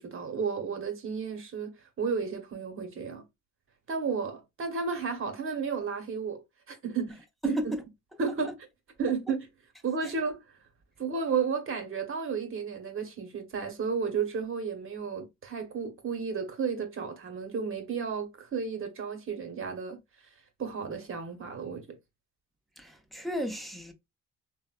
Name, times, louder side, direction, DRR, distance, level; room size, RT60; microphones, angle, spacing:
voice 1, 0.0-1.7 2.0-3.2 3.9-7.7 8.2-8.7 9.0-9.5 9.8-10.4 11.0-20.0 20.6-22.0, right 5 dB, 45° right, 1.0 m, -33 dB
voice 2, 7.4-7.8 10.0-10.1 22.8-23.9, equal, ahead, 0.6 m, -34 dB
3.3 x 2.1 x 2.2 m
cardioid pair, 90°, 30 cm